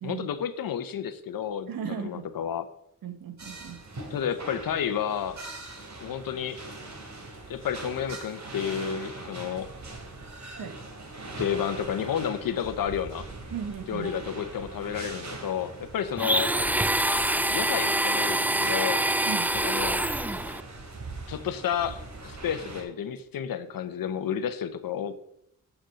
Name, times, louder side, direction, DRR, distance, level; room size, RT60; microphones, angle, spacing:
voice 1, 0.0-2.7 4.1-5.4 6.0-6.6 7.5-9.7 11.4-13.3 13.9-16.5 17.5-19.1 19.5-20.0 21.3-25.2, left 8 dB, 90° left, 11 dB, 1.0 m, -31 dB
voice 2, 1.7-2.3 3.0-3.8 10.6-10.7 13.5-14.1 19.3-19.5, right 7 dB, 85° right, 8 dB, 1.5 m, -36 dB
sound 1, 3.4-22.8, right 2 dB, 55° right, 3.0 m, -41 dB
Domestic sounds home sounds, 16.2-20.6, right 1 dB, 5° right, 0.4 m, -25 dB
7.3 x 6.6 x 7.7 m, 0.74 s
cardioid pair, 65°, 34 cm